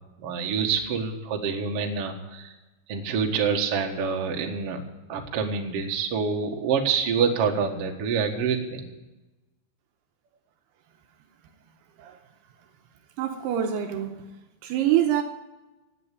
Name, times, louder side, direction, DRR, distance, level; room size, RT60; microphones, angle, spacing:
voice 1, 0.2-2.5 2.9-4.8 5.1-8.8, right 6 dB, 65° right, 1.5 m, -26 dB
voice 2, 13.2-14.2 14.6-15.2, right 11 dB, 80° right, 2.6 m, -25 dB
17.0 x 8.5 x 8.4 m
omnidirectional pair, 5.2 m